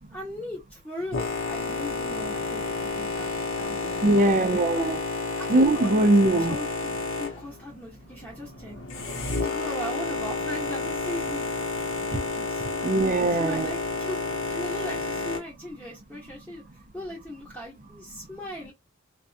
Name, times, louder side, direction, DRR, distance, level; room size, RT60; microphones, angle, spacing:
voice 1, 0.1-4.0 4.7-4.9 5.4-6.1 6.3-8.8 9.3-11.5 12.1-13.0 13.4-18.7, left 1 dB, 5° left, 1.0 m, -38 dB
Boat Water vehicle, 1.1-15.4, left 3 dB, 60° left, 0.7 m, -31 dB
voice 2, 4.0-5.0 5.5-6.6 12.8-13.7, right 2 dB, 35° right, 0.4 m, -21 dB
2.5 x 2.2 x 2.4 m
head